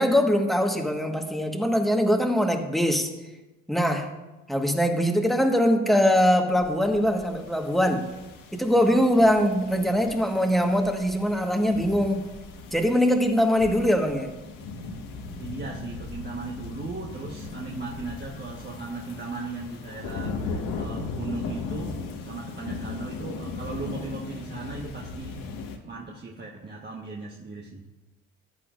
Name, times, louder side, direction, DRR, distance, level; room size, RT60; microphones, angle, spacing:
voice 1, 0.0-3.1 3.7-4.1 4.5-8.1 8.5-12.2 12.7-14.3, equal, ahead, 3 dB, 1.5 m, -22 dB
sound 1, 6.5-25.8, left 3 dB, 70° left, 1.5 m, -38 dB
voice 2, 15.4-25.4 25.8-27.8, right 3 dB, 30° right, -1 dB, 1.3 m, -37 dB
14.5 x 9.9 x 2.6 m, 1.1 s
supercardioid pair, 70°, 34 cm